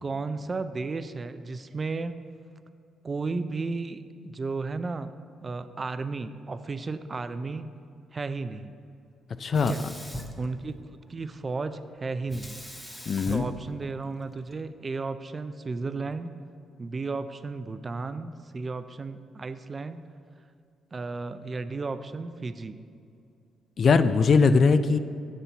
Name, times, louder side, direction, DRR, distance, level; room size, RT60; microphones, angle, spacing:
voice 1, 0.0-2.2 3.0-5.1 5.4-7.7 8.1-8.7 9.5-9.8 10.4-10.8 11.1-12.6 13.3-16.3 16.8-20.0 20.9-22.9, right 3 dB, 30° right, 11 dB, 0.4 m, -34 dB
voice 2, 9.4-9.7 13.1-13.5 23.8-25.0, left 4 dB, 50° left, 12 dB, 0.3 m, -20 dB
Sink (filling or washing), 9.5-11.1 12.3-14.5, equal, 5° left, 0.8 m, -41 dB
7.5 x 4.1 x 6.8 m, 2.5 s
cardioid pair, 90°, 0 cm